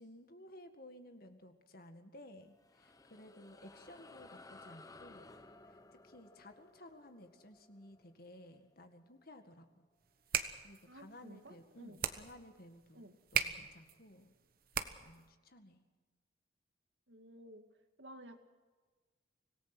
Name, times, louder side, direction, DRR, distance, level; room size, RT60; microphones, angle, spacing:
voice 1, 0.0-5.4 5.6-9.9 10.6-14.3 15.0-15.8, left 1 dB, 55° left, 7 dB, 1.9 m, -56 dB
sound 1, 2.4-9.2, left 2 dB, 20° left, 1.0 m, -58 dB
sound 2, 10.0-15.3, right 8 dB, 55° right, 1.2 m, -40 dB
voice 2, 10.9-12.0 12.9-13.1 17.1-17.7 18.0-18.4, right 1 dB, 85° right, 6 dB, 2.2 m, -54 dB
25.5 x 18.0 x 6.1 m, 1.3 s
head